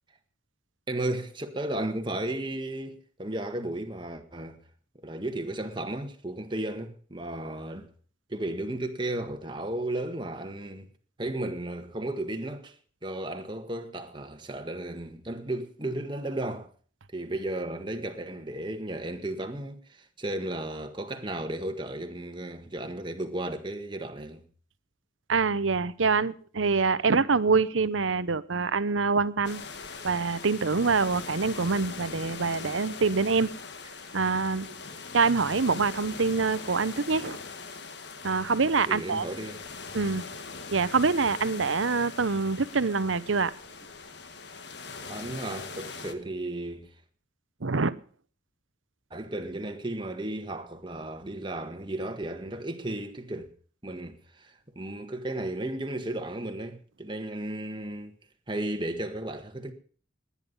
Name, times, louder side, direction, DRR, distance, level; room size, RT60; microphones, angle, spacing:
voice 1, 0.9-4.6 5.0-7.9 8.3-10.9 11.2-12.7 13.0-16.7 17.1-24.4 38.9-39.6 45.1-46.9 49.1-53.5 53.8-58.2 58.5-59.7, right 1 dB, 25° right, 1.6 m, -34 dB
voice 2, 25.3-29.6 30.0-33.5 34.1-34.8 35.1-37.4 38.2-39.2 39.9-40.2 40.7-43.5 47.6-47.9, right 4 dB, 90° right, 0.9 m, -25 dB
sound 1, 29.4-46.1, left 4 dB, 60° left, 1.5 m, -41 dB
19.5 x 9.9 x 5.5 m
head